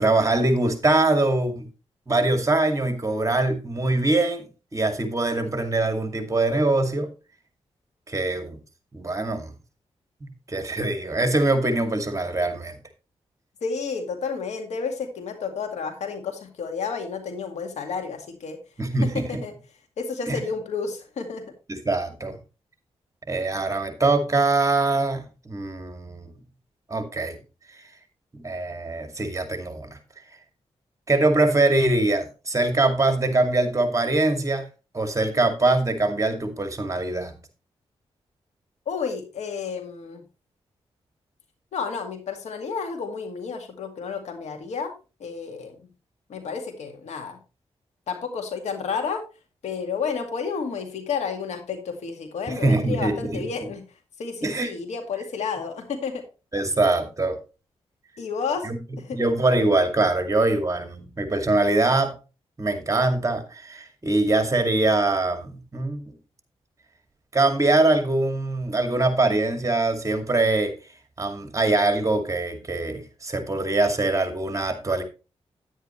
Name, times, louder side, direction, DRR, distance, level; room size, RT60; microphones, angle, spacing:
voice 1, 0.0-1.7 2.1-7.1 8.1-8.6 8.9-9.5 10.2-12.8 18.8-19.4 20.3-20.4 21.7-22.4 23.3-26.3 26.9-27.4 28.3-30.0 31.1-34.7 34.9-37.4 52.6-53.4 54.4-54.7 56.5-57.4 58.6-58.8 59.1-62.2 62.6-66.1 67.3-70.7 71.2-75.0, right 2 dB, 30° right, 7 dB, 2.3 m, -23 dB
voice 2, 13.6-18.6 19.0-19.5 20.0-21.4 38.9-40.2 41.7-44.9 45.2-45.8 46.3-47.4 48.1-49.2 49.6-53.8 54.2-56.2 58.2-58.7 59.0-59.2, left 5 dB, 85° left, 5 dB, 2.1 m, -31 dB
9.9 x 9.3 x 3.2 m, 0.31 s
cardioid pair, 65°, 11 cm